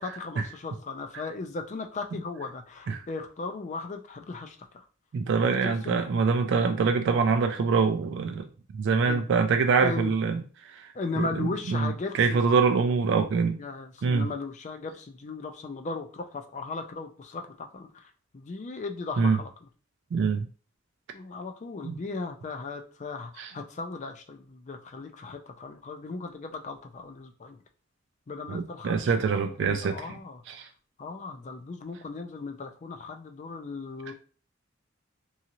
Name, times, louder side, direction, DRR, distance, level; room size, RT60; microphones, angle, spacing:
voice 1, 0.0-4.8 5.4-6.0 6.6-6.8 9.1-9.3 9.8-10.1 10.9-12.4 13.6-19.5 21.1-27.6 28.3-29.1 29.4-30.4 31.0-34.1, left 3 dB, 35° left, 5 dB, 0.4 m, -37 dB
voice 2, 5.1-8.5 8.7-13.6 14.0-14.3 19.2-19.4 20.1-20.5 21.8-21.9 23.4-23.5 28.5-30.2 30.5-30.7, right 5 dB, 60° right, 7 dB, 0.3 m, -25 dB
2.8 x 2.4 x 2.9 m, 0.38 s
head